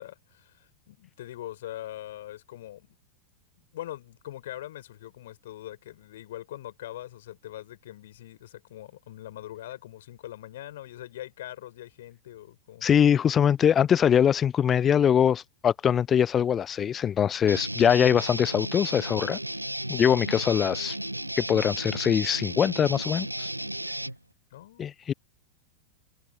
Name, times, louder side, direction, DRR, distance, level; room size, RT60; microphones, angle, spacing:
voice 1, 0.0-3.0 3.7-12.9 24.5-24.9, left 13 dB, 55° left, 6.5 m, -42 dB
voice 2, 12.8-19.4 19.9-21.0 21.4-23.5 24.8-25.1, left 8 dB, 25° left, 0.3 m, -23 dB
Guitar, 17.5-24.2, right 1 dB, 85° right, 1.4 m, -34 dB
figure-of-eight pair, 90°, 0 cm